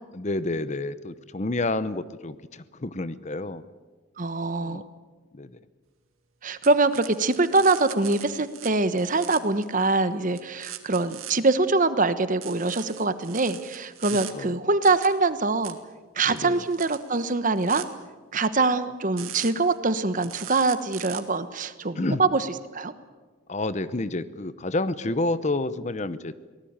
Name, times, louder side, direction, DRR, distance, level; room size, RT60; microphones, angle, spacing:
voice 1, 0.1-3.6 4.6-4.8 5.3-5.5 14.3-14.5 16.3-16.6 22.0-22.3 23.5-26.3, left 2 dB, 35° left, 14 dB, 0.7 m, -29 dB
voice 2, 4.2-4.8 6.4-15.8 16.2-17.8 18.3-22.5 22.7-22.9, right 3 dB, 40° right, 12 dB, 1.1 m, -24 dB
sound 1, 6.6-8.7 9.0-9.9 10.3-11.3 12.4-14.3 14.8-15.1 15.6-15.7 16.4-17.8 19.2-19.7 20.2-21.2, right 13 dB, 80° right, 2.1 m, -40 dB
23.5 x 19.0 x 8.8 m, 1.4 s
head